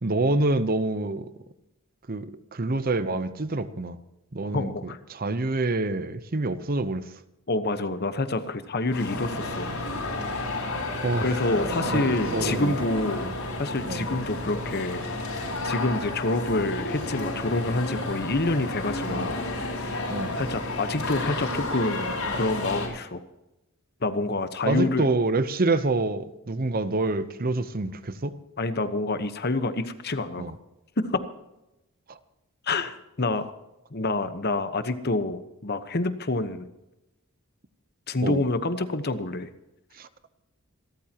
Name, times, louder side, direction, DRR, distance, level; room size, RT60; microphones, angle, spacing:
voice 1, 0.0-1.3 2.1-4.0 4.3-7.0 11.0-11.3 11.8-12.0 12.3-12.7 13.2-13.3 13.8-14.1 19.1-19.3 20.1-20.4 24.7-28.3 30.4-30.5 32.1-32.2 38.2-38.4 40.0-40.1, right 2 dB, 40° right, 0.8 m, -27 dB
voice 2, 4.5-5.0 7.5-9.7 11.2-15.0 15.6-20.0 20.4-23.2 24.0-25.1 28.6-30.4 31.0-31.2 32.7-33.5 33.9-36.7 38.1-39.5, left 2 dB, 45° left, 1.1 m, -27 dB
sound 1, 8.9-22.9, left 2 dB, 80° left, 6.4 m, -31 dB
26.5 x 13.5 x 3.0 m
head